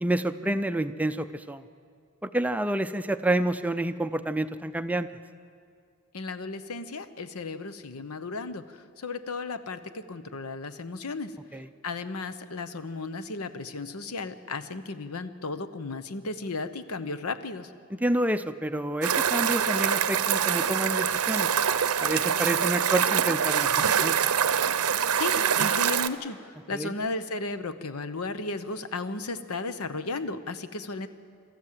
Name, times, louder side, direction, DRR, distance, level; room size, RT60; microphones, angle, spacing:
voice 1, 0.0-1.6 2.2-5.1 11.5-11.7 17.9-21.5 22.0-24.2 26.7-26.9, right 1 dB, 5° right, 10 dB, 0.5 m, -28 dB
voice 2, 6.1-11.3 11.8-17.7 25.2-31.1, left 3 dB, 75° left, 12 dB, 0.9 m, -35 dB
sound 1, 19.0-26.1, right 8 dB, 80° right, 0.7 m, -25 dB
26.0 x 13.5 x 7.5 m, 2.2 s
head